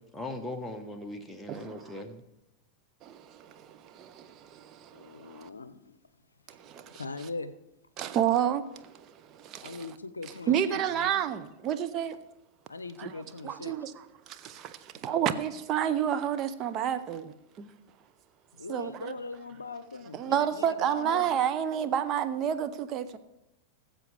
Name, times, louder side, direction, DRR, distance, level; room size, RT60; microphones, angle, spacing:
voice 1, 0.0-2.2, left 2 dB, 5° left, 1.2 m, -39 dB
voice 2, 1.5-2.0 3.0-5.5 6.5-7.3 8.0-9.9 10.5-12.2 13.0-17.7 18.7-19.2 20.1-23.2, right 9 dB, 35° right, 0.7 m, -31 dB
voice 3, 4.9-6.0 6.9-7.5 9.6-11.1 12.7-13.7 18.5-21.3, left 3 dB, 75° left, 0.6 m, -40 dB
19.0 x 7.6 x 3.4 m
figure-of-eight pair, 90°, 0 cm